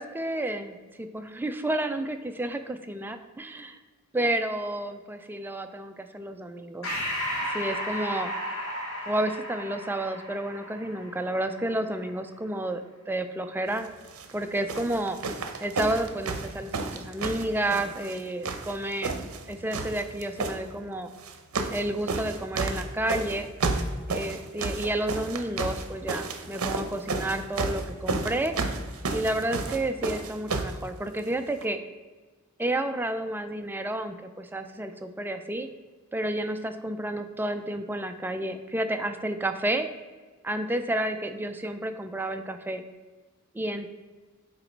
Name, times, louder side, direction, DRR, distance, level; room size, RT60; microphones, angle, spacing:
voice 1, 0.0-3.7 4.1-6.9 7.5-8.3 9.1-13.9 14.3-15.2 15.6-19.2 19.5-21.1 21.7-23.5 24.1-28.5 29.1-31.8 32.6-35.7 36.1-39.9 40.4-42.8 43.5-43.9, right 1 dB, 10° right, 7 dB, 0.3 m, -30 dB
Breathing, 6.8-11.7, equal, 80° left, 1.6 m, -34 dB
sound 1, 14.0-14.3 14.7-18.2 18.4-19.4 19.7-20.6 21.2-21.8 22.1-30.8 31.6-31.7, right 3 dB, 70° right, 0.7 m, -31 dB
8.0 x 3.0 x 4.5 m, 1.3 s
head